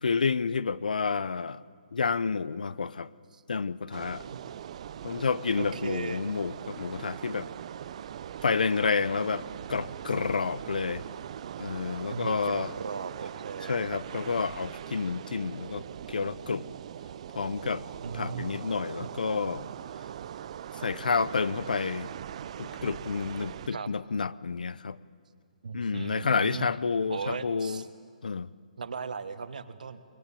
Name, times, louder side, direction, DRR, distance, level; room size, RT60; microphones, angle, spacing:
voice 1, 0.0-1.6 1.9-3.1 3.5-4.3 5.0-7.5 8.4-11.0 11.6-12.7 13.7-16.7 17.3-17.8 18.1-19.7 20.7-22.1 22.6-25.0 25.7-27.8 28.2-28.5, left 5 dB, 80° left, 17 dB, 0.7 m, -29 dB
sound 1, 3.9-23.7, right 9 dB, 50° right, 0.6 m, -41 dB
voice 2, 5.6-6.2 12.1-14.3 18.0-19.1 23.7-23.9 25.6-26.7 27.1-27.9 28.8-30.0, right 5 dB, 70° right, 11 dB, 1.5 m, -38 dB
22.0 x 21.0 x 8.6 m, 2.1 s
hypercardioid pair, 140°, 4 cm